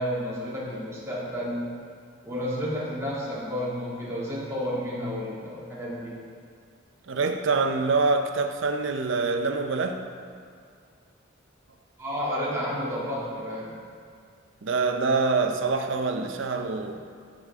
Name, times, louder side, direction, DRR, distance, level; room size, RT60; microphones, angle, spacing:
voice 1, 0.0-1.7 2.2-6.2 12.0-13.8, equal, 15° right, -8 dB, 2.3 m, -31 dB
voice 2, 7.1-10.0 14.6-17.1, right 4 dB, 65° right, 6 dB, 0.6 m, -25 dB
14.5 x 5.1 x 3.6 m, 2.2 s
head